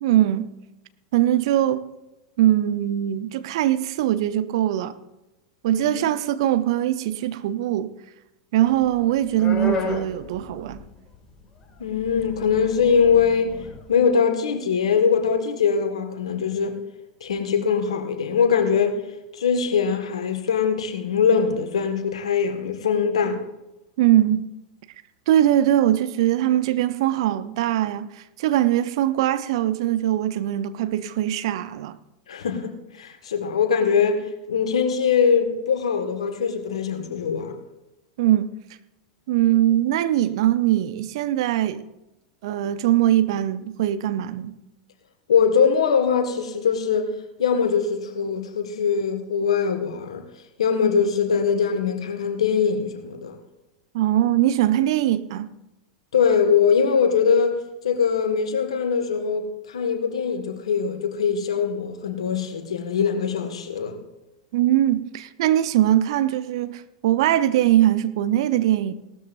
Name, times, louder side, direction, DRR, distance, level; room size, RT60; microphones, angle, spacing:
voice 1, 0.0-0.5 1.1-1.8 2.4-4.9 5.6-7.9 8.5-10.8 24.0-24.5 25.3-32.0 38.2-38.5 39.3-41.9 42.4-44.6 53.9-55.5 64.5-68.9, right 12 dB, 55° right, 0.8 m, -21 dB
sound 1, 8.7-11.2 11.6-14.0, left 3 dB, 20° left, 2.5 m, -33 dB
voice 2, 11.8-13.5 13.9-16.8 17.2-19.0 19.4-23.4 32.3-32.7 33.0-37.5 45.3-47.1 47.4-50.2 50.6-53.4 56.1-64.0, left 6 dB, 70° left, 1.8 m, -22 dB
17.5 x 13.0 x 2.6 m
figure-of-eight pair, 90°, 3 cm